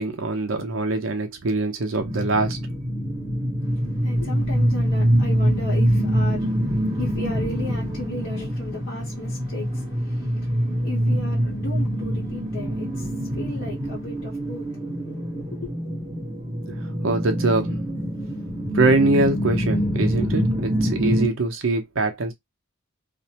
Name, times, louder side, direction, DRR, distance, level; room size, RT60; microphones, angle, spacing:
voice 1, 0.0-2.6 16.7-16.8 17.0-17.8 18.7-22.3, right 2 dB, 70° right, 0.7 m, -23 dB
sound 1, 1.9-21.3, equal, 25° right, 1.1 m, -25 dB
voice 2, 3.6-15.7, left 2 dB, 70° left, 0.9 m, -36 dB
2.5 x 2.1 x 2.8 m
head